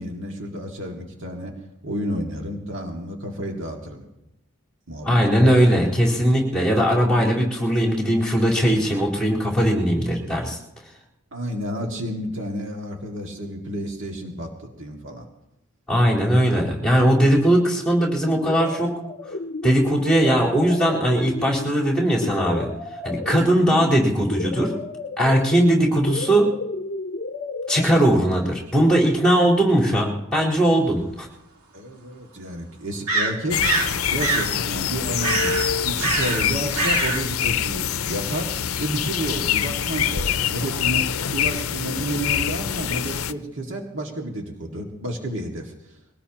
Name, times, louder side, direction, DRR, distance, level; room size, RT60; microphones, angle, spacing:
voice 1, 0.0-1.5 1.8-4.1 4.9-5.7 11.3-15.3 31.7-33.7 34.1-35.6 35.8-38.5 38.8-46.0, right 1 dB, 55° right, 0 dB, 2.1 m, -31 dB
voice 2, 5.0-10.6 15.9-18.9 19.6-22.7 23.0-24.7 25.2-26.5 27.7-31.3, equal, 5° left, -5 dB, 4.3 m, -19 dB
sound 1, 18.3-27.9, left 2 dB, 40° left, 0.8 m, -32 dB
sound 2, 31.0-31.1 33.1-33.9 34.2-34.5 35.2-35.7 36.0-36.5 36.7-37.2, right 3 dB, 85° right, 2.4 m, -23 dB
sound 3, 33.5-43.3, left 9 dB, 70° left, 0.6 m, -25 dB
23.0 x 18.5 x 3.0 m, 0.88 s
head